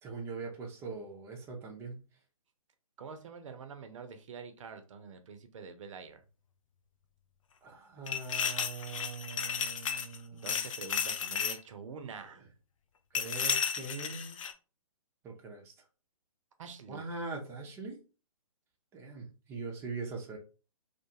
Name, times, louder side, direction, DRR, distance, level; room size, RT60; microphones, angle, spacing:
voice 1, 0.0-2.0 7.6-10.7 13.1-14.4 15.2-15.7 16.9-18.0 18.9-20.4, right 3 dB, 15° right, 0.5 m, -42 dB
voice 2, 3.0-6.2 10.3-12.4 16.6-17.1, right 5 dB, 55° right, 0.6 m, -46 dB
sound 1, 8.1-10.2 10.4-11.6 13.1-14.5, left 7 dB, 60° left, 0.4 m, -33 dB
2.4 x 2.3 x 2.8 m
hypercardioid pair, 135°, 19 cm